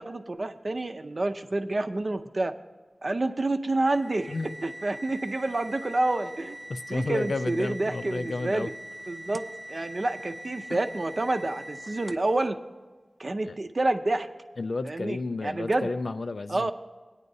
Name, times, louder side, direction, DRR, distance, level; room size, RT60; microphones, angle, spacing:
voice 1, 0.0-2.5 3.0-4.3 4.6-6.6 6.9-8.7 9.1-9.4 9.7-12.6 13.2-14.3 14.9-15.9 16.5-16.7, right 2 dB, 55° right, 8 dB, 0.6 m, -28 dB
sound 1, 3.9-12.4, right 1 dB, 10° right, 0.4 m, -42 dB
voice 2, 6.7-8.7 10.7-10.8 13.4-13.6 14.6-16.7, left 3 dB, 90° left, 10 dB, 0.3 m, -32 dB
17.5 x 9.5 x 2.7 m, 1.3 s
wide cardioid pair, 55°, 0 cm